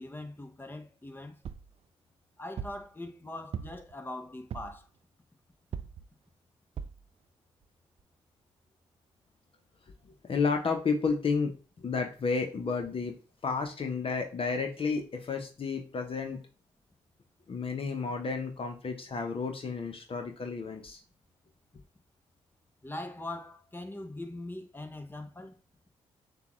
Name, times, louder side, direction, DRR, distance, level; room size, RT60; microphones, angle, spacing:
voice 1, 0.0-1.4 2.4-4.9 22.8-25.6, left 2 dB, 15° left, 0.9 m, -41 dB
sound 1, 1.4-1.7 2.6-2.9 3.5-3.9 4.5-4.8 5.7-6.1 6.8-7.0 7.6-7.7 8.0-8.1, right 7 dB, 50° right, 0.4 m, -39 dB
voice 2, 10.3-13.2 13.4-16.4 17.5-21.0, left 4 dB, 45° left, 0.9 m, -31 dB
6.7 x 2.4 x 3.1 m
supercardioid pair, 50°, 13 cm